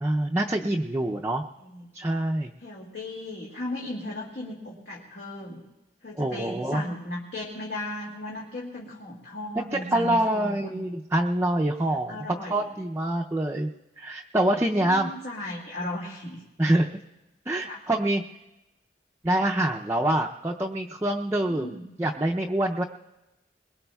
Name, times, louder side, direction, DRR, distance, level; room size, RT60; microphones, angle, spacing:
voice 1, 0.0-1.4 1.9-2.5 6.2-6.8 9.7-13.7 14.0-15.1 16.6-16.9 17.5-18.2 19.2-22.8, right 1 dB, 15° right, 0 dB, 0.4 m, -25 dB
voice 2, 2.6-5.6 6.0-10.7 12.1-12.6 14.8-16.4 17.6-17.8 21.5-21.9, left 1 dB, 75° left, -4 dB, 2.0 m, -36 dB
22.5 x 21.5 x 2.3 m, 1.0 s
head